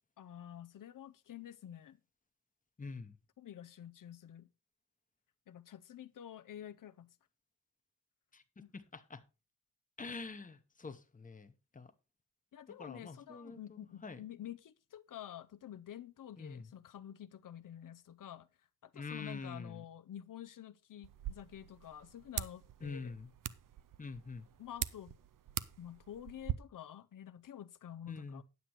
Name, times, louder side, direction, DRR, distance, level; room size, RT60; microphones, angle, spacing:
voice 1, 0.2-2.0 3.4-4.5 5.5-7.2 8.6-8.7 12.5-18.5 18.8-23.1 24.6-25.2 25.8-28.4, left 10 dB, 80° left, 0.5 m, -49 dB
voice 2, 2.8-3.2 8.3-9.2 10.0-11.9 12.8-14.2 16.4-16.7 18.9-19.8 22.8-23.3 24.0-24.5 28.1-28.4, left 4 dB, 25° left, 0.8 m, -46 dB
sound 1, 21.0-26.5, right 11 dB, 80° right, 0.6 m, -43 dB
9.6 x 7.5 x 4.3 m
wide cardioid pair, 170°, 32 cm